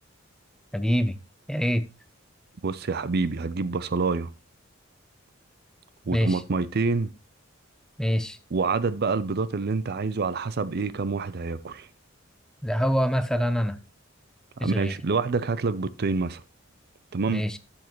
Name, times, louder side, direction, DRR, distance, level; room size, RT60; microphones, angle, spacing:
voice 1, 0.7-1.2 1.5-1.8 6.1-6.4 8.0-8.4 12.6-13.8 14.6-14.9 17.3-17.6, equal, 5° left, 0.6 m, -25 dB
voice 2, 2.6-4.3 6.1-7.1 8.5-11.9 14.6-16.4 17.1-17.4, right 4 dB, 50° right, 0.5 m, -27 dB
12.0 x 7.2 x 3.0 m
head